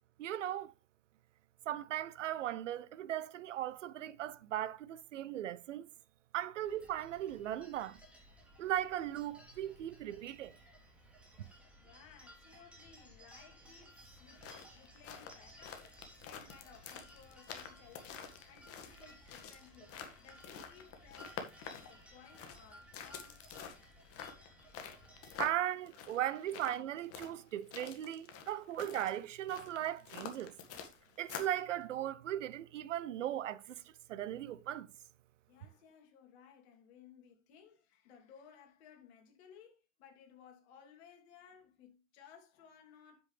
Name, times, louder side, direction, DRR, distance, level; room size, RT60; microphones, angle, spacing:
voice 1, 0.2-0.7 1.7-5.9 6.3-8.0 8.6-10.5 25.4-30.5 31.2-33.8 34.1-34.9, right 12 dB, 65° right, 0.9 m, -38 dB
sound 1, 6.6-25.5, equal, 5° right, 3.7 m, -59 dB
voice 2, 11.8-23.5 26.5-26.6 35.5-43.2, left 7 dB, 55° left, 3.0 m, -60 dB
sound 2, 14.2-31.6, left 7 dB, 35° left, 1.9 m, -48 dB
9.6 x 8.1 x 3.4 m
figure-of-eight pair, 95°, 39 cm